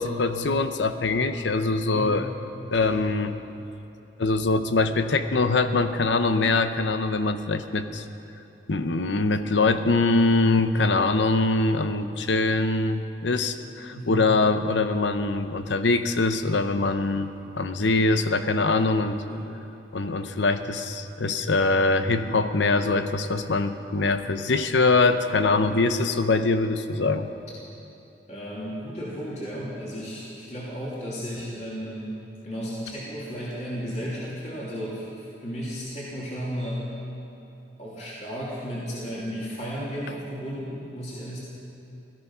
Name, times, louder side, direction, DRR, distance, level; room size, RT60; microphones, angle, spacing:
voice 1, 0.0-2.3 2.7-3.4 4.2-8.0 8.7-19.2 19.9-27.3, left 3 dB, 90° left, 9 dB, 0.8 m, -23 dB
voice 2, 13.9-14.3 17.8-17.9 19.3-19.6 25.6-25.7 28.3-32.2 32.4-36.9 37.8-41.4, equal, 40° left, -7 dB, 2.9 m, -34 dB
18.0 x 13.5 x 5.6 m, 2.9 s
head